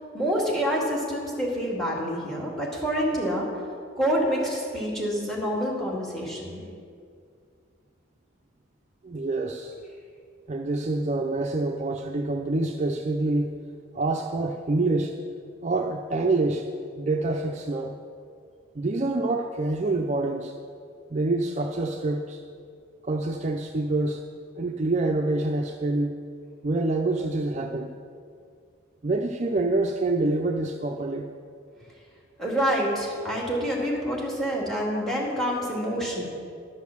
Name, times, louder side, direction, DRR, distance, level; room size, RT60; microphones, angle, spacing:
voice 1, 0.1-3.5 4.0-6.6 32.4-36.2, equal, ahead, -3 dB, 2.3 m, -27 dB
voice 2, 9.0-9.8 10.5-13.6 13.9-15.1 15.6-16.7 17.0-17.9 18.7-20.5 21.1-22.4 23.0-24.2 24.6-26.2 26.6-27.9 29.0-31.3, right 2 dB, 35° right, 3 dB, 0.4 m, -26 dB
11.5 x 6.4 x 7.1 m, 2.2 s
head